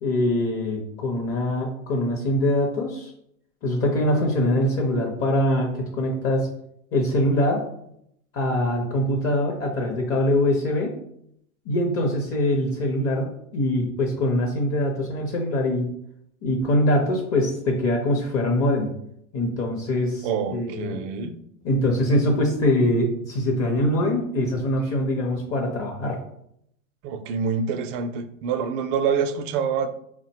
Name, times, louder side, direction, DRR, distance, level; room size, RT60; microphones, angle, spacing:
voice 1, 0.0-3.1 3.6-6.5 6.9-7.6 8.3-10.9 11.7-15.9 16.4-18.9 19.3-21.0 21.6-26.2, left 1 dB, 35° left, 1 dB, 0.6 m, -23 dB
voice 2, 20.2-21.3 27.0-29.9, right 6 dB, 45° right, 9 dB, 0.4 m, -26 dB
3.8 x 2.1 x 2.8 m, 0.73 s
hypercardioid pair, 105°, 39 cm